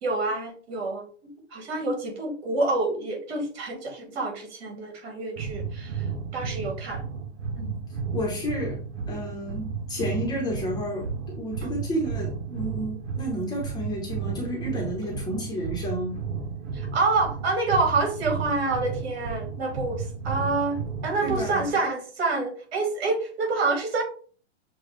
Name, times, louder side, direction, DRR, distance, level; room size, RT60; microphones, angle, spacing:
voice 1, 0.0-1.0 1.5-7.0 7.6-7.8 11.6-11.7 15.0-15.2 16.7-24.0, right 3 dB, 60° right, 2 dB, 2.1 m, -27 dB
sound 1, 5.4-21.8, right 5 dB, 85° right, 0.9 m, -33 dB
voice 2, 8.1-8.8 9.1-16.1 21.2-21.7, equal, 10° left, -1 dB, 0.9 m, -31 dB
7.0 x 2.3 x 3.2 m, 0.41 s
hypercardioid pair, 155°, 34 cm